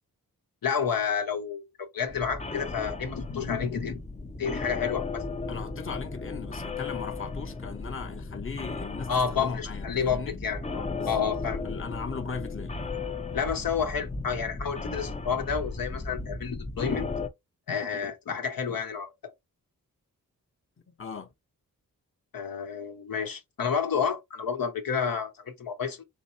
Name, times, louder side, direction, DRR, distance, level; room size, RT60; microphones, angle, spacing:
voice 1, 0.6-1.6 1.9-4.0 4.4-5.2 9.1-11.6 13.3-17.1 17.7-19.1 22.3-26.0, left 6 dB, 70° left, 1.0 m, -30 dB
sound 1, 2.1-17.3, left 3 dB, 20° left, 0.6 m, -35 dB
voice 2, 5.5-10.4 10.9-11.3 11.6-12.7 20.9-21.3, left 5 dB, 35° left, 0.9 m, -38 dB
4.1 x 3.2 x 2.7 m
cardioid pair, 55°, 35 cm